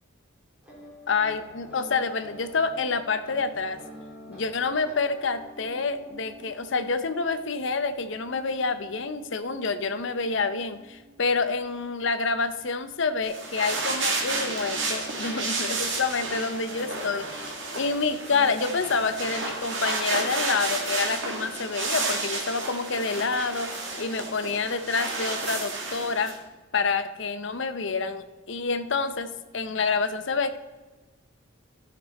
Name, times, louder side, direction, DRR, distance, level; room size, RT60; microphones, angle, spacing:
sound 1, 0.6-12.5 13.6-19.8, equal, 5° right, 3.5 m, -47 dB
voice 1, 1.1-3.8 4.3-26.3 26.7-30.6, left 4 dB, 60° left, 10 dB, 0.7 m, -28 dB
sound 2, 13.2-26.4, right 3 dB, 60° right, 2.0 m, -31 dB
13.5 x 6.8 x 4.2 m, 1.2 s
head